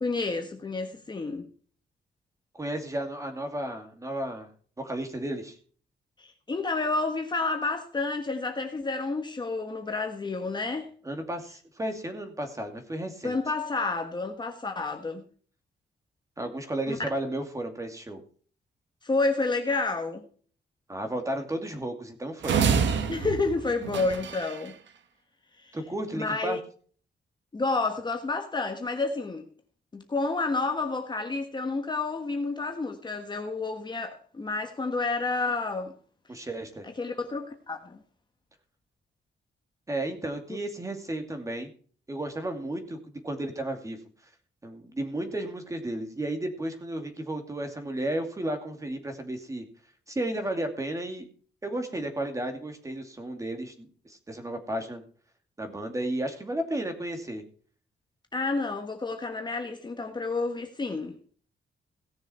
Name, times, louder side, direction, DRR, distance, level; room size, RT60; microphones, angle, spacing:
voice 1, 0.0-1.5 6.2-10.9 13.2-15.2 16.9-17.0 19.0-20.3 23.1-24.7 25.6-25.8 26.1-26.6 27.5-29.4 29.9-35.9 36.8-38.0 58.3-61.2, left 3 dB, 25° left, 1.4 m, -30 dB
voice 2, 2.5-4.5 4.8-5.6 11.0-13.4 16.4-18.2 20.9-22.6 25.7-26.6 36.3-36.9 39.9-41.7 42.1-44.0 44.6-49.6 50.1-51.3 51.6-55.0 55.6-57.4, right 1 dB, 15° right, 2.4 m, -33 dB
sound 1, 22.4-24.7, right 6 dB, 90° right, 1.5 m, -27 dB
17.5 x 6.9 x 4.4 m
wide cardioid pair, 145°, 18 cm